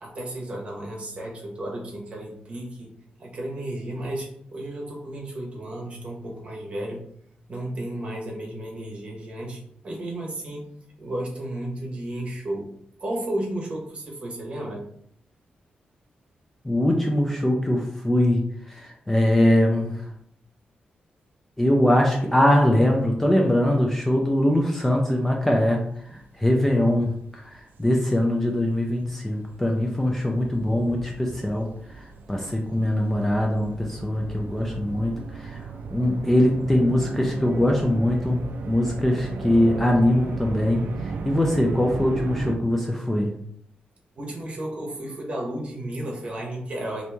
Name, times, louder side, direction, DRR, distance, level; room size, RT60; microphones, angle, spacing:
voice 1, 0.0-2.9 3.2-7.0 7.5-10.6 11.0-12.7 13.0-14.8 44.2-47.1, right 1 dB, 40° right, -1 dB, 0.9 m, -33 dB
voice 2, 16.6-20.1 21.6-38.4 38.7-43.3, left 1 dB, 10° left, 0 dB, 0.4 m, -22 dB
sound 1, 26.0-26.2 26.8-42.6, right 4 dB, 80° right, 0.3 m, -36 dB
2.9 x 2.6 x 3.3 m, 0.68 s
wide cardioid pair, 165°, 3 cm